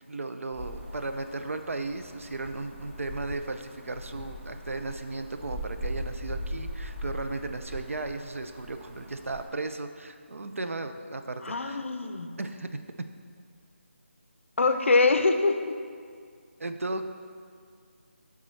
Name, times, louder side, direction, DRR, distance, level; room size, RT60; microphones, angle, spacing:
voice 1, 0.1-11.8 12.4-12.7 16.6-17.1, right 2 dB, 90° right, 8 dB, 0.5 m, -35 dB
sound 1, 0.5-9.5, equal, 5° right, 1.0 m, -40 dB
voice 2, 11.4-12.3 14.6-15.7, left 3 dB, 70° left, 7 dB, 0.5 m, -24 dB
9.8 x 3.6 x 3.2 m, 2.1 s
figure-of-eight pair, 170°, 7 cm